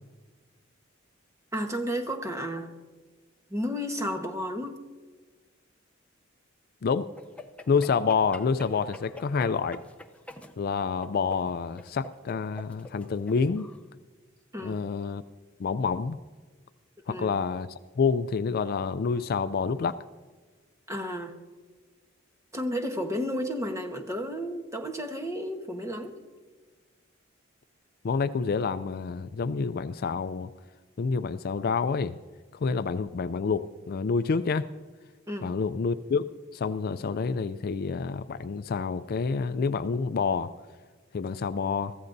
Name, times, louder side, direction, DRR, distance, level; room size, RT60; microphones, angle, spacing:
voice 1, 1.5-2.7 3.5-4.8 14.5-14.8 17.1-17.3 20.9-21.4 22.5-26.1 35.3-35.6, equal, 15° right, 4 dB, 1.2 m, -32 dB
sound 1, 7.2-13.8, left 1 dB, 5° left, 0.6 m, -48 dB
voice 2, 7.7-9.8 10.6-13.7 14.6-15.2 15.6-16.2 17.1-20.0 28.0-30.5 31.0-32.2 32.6-34.7 35.4-40.5 41.1-42.0, left 5 dB, 50° left, 12 dB, 0.4 m, -28 dB
23.0 x 14.5 x 2.7 m, 1.4 s
head